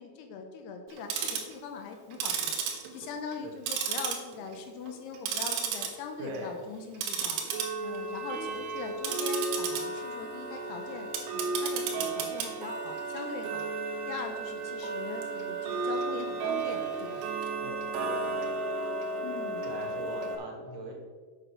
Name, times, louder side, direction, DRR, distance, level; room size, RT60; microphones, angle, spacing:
voice 1, 0.0-2.5 2.9-7.4 7.8-13.7 14.1-17.3 19.2-19.7, left 5 dB, 75° left, 4 dB, 2.6 m, -41 dB
Tick-tock, 0.9-1.5 2.1-3.4 3.7-4.5 4.9-5.9 6.3-6.5 6.9-20.4, right 4 dB, 85° right, 3.6 m, -33 dB
voice 2, 6.2-6.5 17.6-17.8 18.0-18.2 19.6-20.9, right 1 dB, 55° right, -1 dB, 1.9 m, -40 dB
8.8 x 5.6 x 6.3 m, 1.5 s
omnidirectional pair, 5.2 m